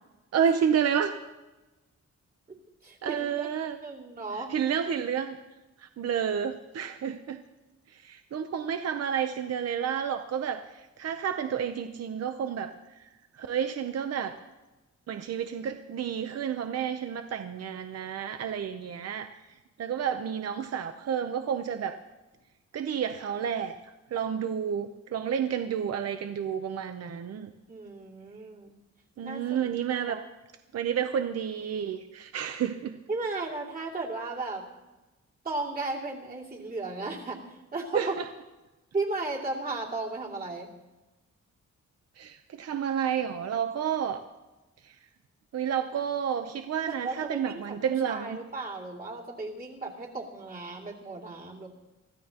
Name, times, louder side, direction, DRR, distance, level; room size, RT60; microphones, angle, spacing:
voice 1, 0.3-1.1 3.0-3.8 4.3-5.4 5.8-7.4 7.9-12.7 13.0-13.1 13.3-14.4 15.1-19.3 19.8-22.0 22.7-23.8 24.1-27.5 29.2-30.2 30.7-33.0 37.9-38.3 42.2-44.2 44.8-44.9 45.5-48.4, right 8 dB, 60° right, 7 dB, 0.8 m, -30 dB
voice 2, 2.8-3.5 3.8-4.5 27.7-28.7 29.2-29.6 30.1-30.2 33.1-34.6 35.4-37.4 37.7-38.1 38.9-40.7 46.9-51.7, right 3 dB, 30° right, -3 dB, 2.7 m, -35 dB
24.0 x 15.0 x 3.0 m, 1.1 s
wide cardioid pair, 175°, 29 cm